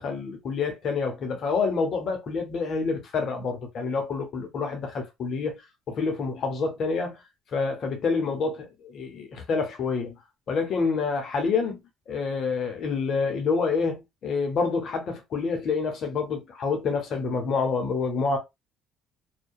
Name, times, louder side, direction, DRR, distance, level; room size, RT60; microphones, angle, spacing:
voice 1, 0.0-5.6 5.9-7.2 7.5-10.1 10.5-11.8 12.1-18.4, left 4 dB, 55° left, 0.8 m, -27 dB
2.7 x 2.2 x 2.2 m
cardioid pair, 90°, 0 cm